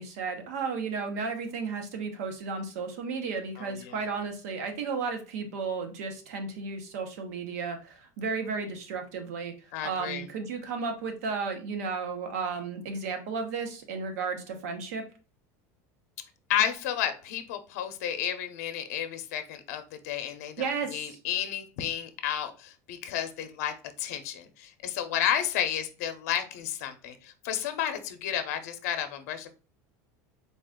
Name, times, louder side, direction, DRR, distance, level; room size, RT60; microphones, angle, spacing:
voice 1, 0.0-9.5 9.8-15.0 20.6-21.2, right 5 dB, 85° right, 5 dB, 0.9 m, -33 dB
voice 2, 3.6-3.9 9.7-10.2 16.5-29.5, left 10 dB, 75° left, 8 dB, 0.6 m, -32 dB
3.9 x 2.5 x 3.6 m, 0.35 s
cardioid pair, 175°, 8 cm